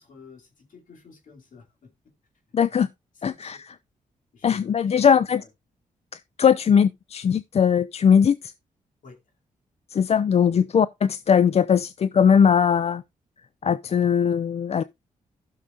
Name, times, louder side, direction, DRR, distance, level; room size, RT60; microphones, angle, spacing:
voice 1, 0.0-1.9 2.7-2.8 3.3-3.6 4.3-5.5 9.0-9.2 10.5-10.6, left 5 dB, 65° left, 2.7 m, -49 dB
voice 2, 2.5-2.9 3.2-3.7 4.4-5.4 6.1-8.5 9.9-13.0 13.6-14.8, left 7 dB, 45° left, 0.4 m, -20 dB
15.5 x 6.5 x 2.5 m
cardioid pair, 70°, 14 cm